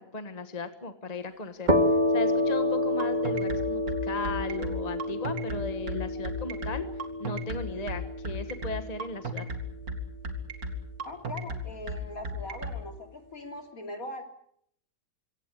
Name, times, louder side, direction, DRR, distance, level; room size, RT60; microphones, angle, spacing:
voice 1, 0.0-1.7 2.1-6.8 7.2-9.4, left 3 dB, 25° left, 9 dB, 1.3 m, -36 dB
sound 1, 1.7-9.1, left 1 dB, 25° right, 2.0 m, -29 dB
sound 2, 3.0-12.8, right 1 dB, 60° right, 2.9 m, -34 dB
voice 2, 11.0-14.2, left 2 dB, 55° left, 5 dB, 3.4 m, -41 dB
24.0 x 17.5 x 8.4 m, 0.70 s
omnidirectional pair, 1.8 m